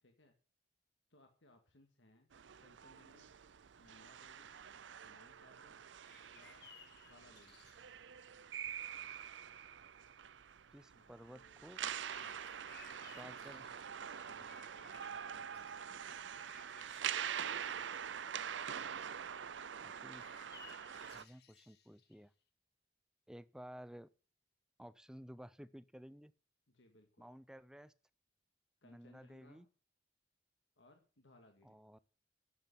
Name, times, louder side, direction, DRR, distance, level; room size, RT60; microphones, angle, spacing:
voice 1, 0.0-0.4 1.1-2.3 2.6-3.3 3.8-4.6 5.0-5.9 6.3-6.7 7.0-7.7 10.9-11.7 12.2-12.5 13.2-13.4 14.3-16.4 26.7-27.3 28.8-29.7 30.8-31.8, left 2 dB, 85° left, 4 dB, 2.0 m, -66 dB
sound 1, 2.3-21.2, right 8 dB, 90° right, 0.6 m, -45 dB
sound 2, 6.0-8.1 11.7-15.9 16.3-18.1 19.8-22.2, left 7 dB, 60° left, 1.9 m, -62 dB
voice 2, 10.7-11.8 13.0-13.6 19.8-20.2 21.1-22.3 23.3-24.1 24.8-26.3 27.2-27.9 28.8-29.7 31.6-32.0, equal, 5° right, 16 dB, 0.5 m, -54 dB
10.5 x 7.9 x 8.4 m, 0.39 s
head